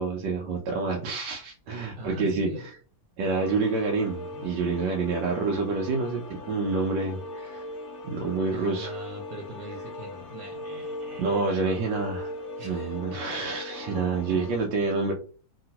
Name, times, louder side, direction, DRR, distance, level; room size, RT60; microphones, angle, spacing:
voice 1, 0.0-2.5 3.2-7.7 8.0-9.0 11.2-12.3 12.6-15.1, right 4 dB, 90° right, 0 dB, 1.3 m, -28 dB
voice 2, 1.9-2.7 8.5-11.6 12.6-13.0 14.3-14.5, right 1 dB, 70° right, 1 dB, 1.3 m, -41 dB
sound 1, 3.4-14.5, left 2 dB, 55° left, 0.8 m, -39 dB
2.9 x 2.8 x 2.8 m, 0.40 s
omnidirectional pair, 1.9 m